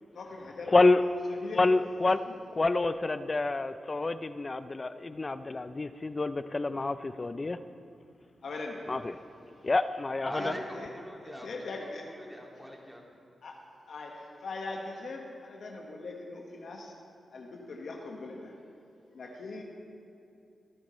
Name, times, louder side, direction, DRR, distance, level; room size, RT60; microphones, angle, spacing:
voice 1, 0.1-0.8 1.3-1.6 8.4-9.0 10.3-10.9 11.2-12.1 13.4-13.6 13.9-16.9 17.3-18.5 19.1-19.6, left 3 dB, 70° left, 0 dB, 1.5 m, -41 dB
voice 2, 0.7-1.0 1.5-2.2 2.5-7.6 8.9-9.1 9.6-10.5, left 3 dB, 35° left, 12 dB, 0.5 m, -27 dB
voice 3, 10.3-11.5 11.8-13.1, equal, 5° right, -1 dB, 2.3 m, -41 dB
24.5 x 9.8 x 3.2 m, 2.6 s
cardioid pair, 75°, 0 cm